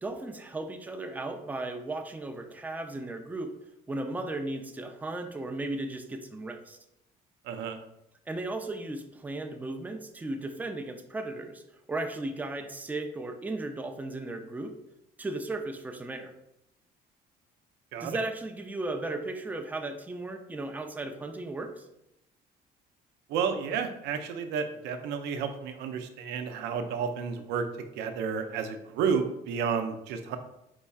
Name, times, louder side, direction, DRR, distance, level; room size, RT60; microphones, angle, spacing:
voice 1, 0.0-3.5 3.9-6.8 8.3-11.6 11.9-14.7 15.2-16.3 18.0-21.9, right 2 dB, 10° right, 5 dB, 0.5 m, -35 dB
voice 2, 7.4-7.8 17.9-18.2 23.3-27.6 28.0-30.4, right 6 dB, 85° right, 7 dB, 0.6 m, -31 dB
4.5 x 4.1 x 2.4 m, 0.83 s
cardioid pair, 110°, 17 cm